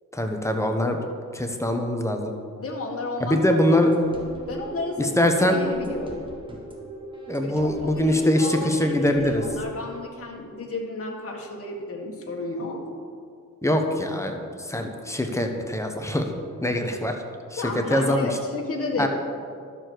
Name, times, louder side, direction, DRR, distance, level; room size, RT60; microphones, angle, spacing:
voice 1, 0.1-1.0 1.3-2.3 3.2-3.9 5.0-5.6 7.3-9.4 13.6-16.2 16.6-17.2 17.5-18.3 19.0-19.1, left 1 dB, 10° left, 4 dB, 1.1 m, -23 dB
voice 2, 2.6-3.8 4.5-6.3 7.4-7.5 7.8-12.8 17.6-19.1, left 2 dB, 45° left, 0 dB, 1.7 m, -32 dB
sound 1, 3.9-9.6, right 1 dB, 15° right, 1.7 m, -40 dB
12.0 x 6.9 x 4.7 m, 2.2 s
cardioid pair, 85°, 32 cm